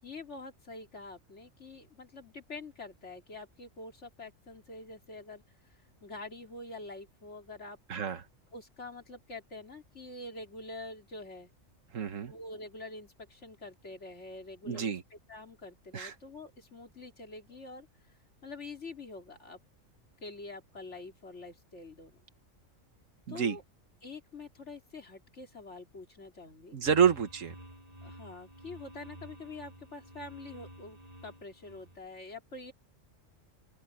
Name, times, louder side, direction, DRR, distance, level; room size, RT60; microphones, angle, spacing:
voice 1, 0.0-5.4 6.0-7.8 8.5-11.5 12.3-17.9 18.4-19.6 20.2-22.2 23.3-23.6 24.0-27.0 28.0-32.7, left 3 dB, 60° left, 3.4 m, -46 dB
voice 2, 7.9-8.2 11.9-12.3 14.7-15.0 15.9-16.1 23.3-23.6 26.7-27.5, right 7 dB, 75° right, 1.6 m, -28 dB
sound 1, 26.9-32.0, right 1 dB, 30° right, 7.7 m, -51 dB
open air
omnidirectional pair, 1.4 m